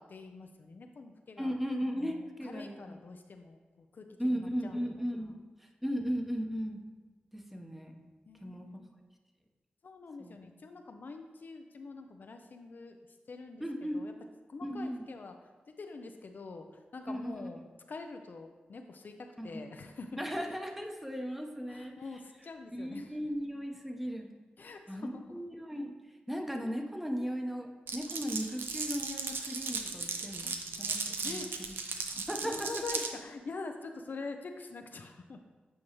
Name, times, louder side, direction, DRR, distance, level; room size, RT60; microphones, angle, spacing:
voice 1, 0.0-1.6 1.9-4.9 8.3-8.9 9.8-13.0 13.3-13.6 13.9-14.1 14.5-15.3 15.8-20.2 21.7-23.1 24.6-25.4 31.2-31.5 32.4-35.4, left 3 dB, 60° left, 5 dB, 0.5 m, -45 dB
voice 2, 1.4-3.0 4.2-5.3 5.8-6.8 7.3-8.0 8.4-8.7 10.2-10.4 13.6-14.0 14.6-15.0 17.1-17.5 19.4-19.6 20.2-21.9 22.7-24.3 24.9-25.9 26.3-31.8 32.1-32.7, equal, 5° right, 2 dB, 1.0 m, -36 dB
Glass, 27.9-33.1, right 4 dB, 75° right, 0.6 m, -36 dB
8.6 x 4.6 x 3.0 m, 1.3 s
cardioid pair, 45°, 4 cm